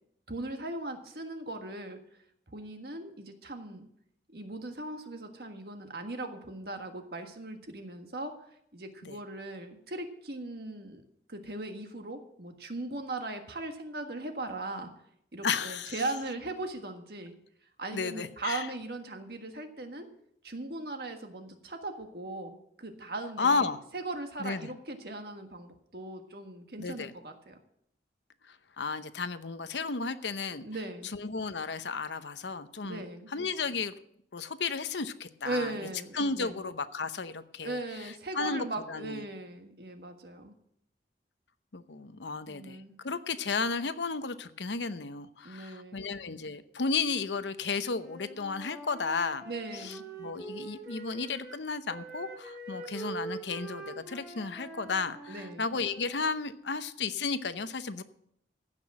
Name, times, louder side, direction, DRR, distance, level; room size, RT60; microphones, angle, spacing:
voice 1, 0.3-2.0 2.5-3.8 4.3-8.3 8.7-11.0 11.3-14.9 15.3-17.3 17.8-20.1 20.4-27.6 30.6-31.1 32.8-33.3 35.4-36.6 37.6-40.5 42.5-42.9 45.4-46.0 49.4-50.0 55.3-55.7, right 2 dB, 60° right, 5 dB, 1.6 m, -39 dB
voice 2, 15.4-16.0 17.9-18.7 23.4-23.8 24.4-24.7 26.8-27.1 28.5-30.7 31.0-33.9 34.3-35.8 36.1-39.2 41.7-49.4 49.7-58.0, left 4 dB, 85° left, 11 dB, 0.8 m, -33 dB
Wind instrument woodwind instrument, 47.9-51.6 51.9-56.3, right 3 dB, 5° right, 2.1 m, -44 dB
15.0 x 6.1 x 7.5 m, 0.72 s
head